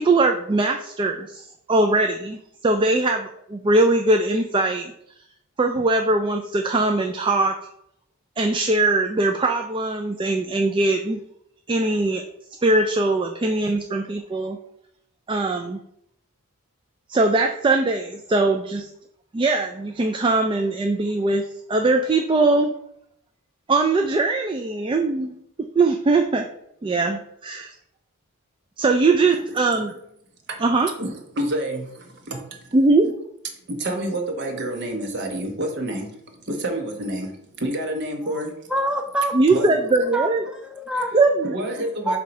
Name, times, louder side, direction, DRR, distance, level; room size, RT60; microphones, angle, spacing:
voice 1, 0.0-2.4 2.6-4.9 5.6-7.5 8.4-11.2 11.7-12.2 12.6-14.6 15.3-15.8 17.1-18.9 19.3-22.7 23.7-25.3 25.8-26.5 26.8-27.7 28.8-29.9 30.6-30.9 32.7-33.1 39.3-40.4 41.1-41.3, right 2 dB, 20° right, 0.3 m, -21 dB
voice 2, 31.0-32.7 33.7-36.1 36.4-38.5 39.5-40.1 41.4-42.2, right 1 dB, 50° right, 1.2 m, -29 dB
voice 3, 38.7-39.3 40.1-41.1 42.0-42.2, right 1 dB, 5° right, 0.7 m, -26 dB
7.2 x 2.8 x 5.3 m
head